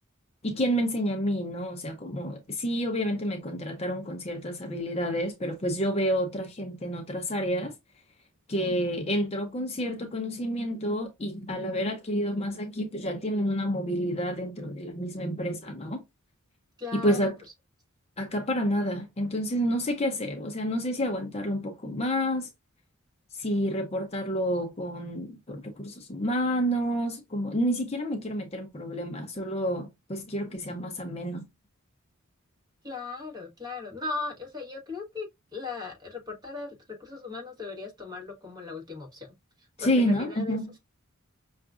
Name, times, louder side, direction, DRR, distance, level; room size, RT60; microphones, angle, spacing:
voice 1, 0.4-7.7 8.5-16.0 16.9-17.4 18.2-22.5 23.3-31.4 39.8-40.7, equal, 30° left, 0.6 m, -29 dB
voice 2, 16.8-17.3 30.5-30.8 32.8-36.7 37.0-39.3 39.6-40.6, left 3 dB, 20° right, 1.4 m, -38 dB
5.7 x 2.4 x 2.4 m
head